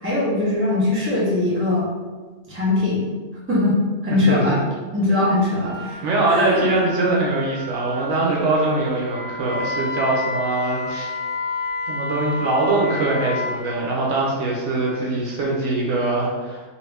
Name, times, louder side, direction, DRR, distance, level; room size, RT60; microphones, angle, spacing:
voice 1, 0.0-1.9 2.5-3.1 3.5-4.6 4.9-6.6, left 2 dB, 10° right, -9 dB, 0.9 m, -21 dB
voice 2, 4.1-4.6 6.0-11.1 11.9-16.6, right 2 dB, 75° right, -3 dB, 1.0 m, -22 dB
Wind instrument woodwind instrument, 5.6-14.5, right 6 dB, 45° right, 1.5 m, -39 dB
Wind instrument woodwind instrument 2, 9.1-13.6, left 3 dB, 50° left, 0.9 m, -29 dB
2.8 x 2.6 x 3.2 m, 1.3 s
omnidirectional pair, 1.3 m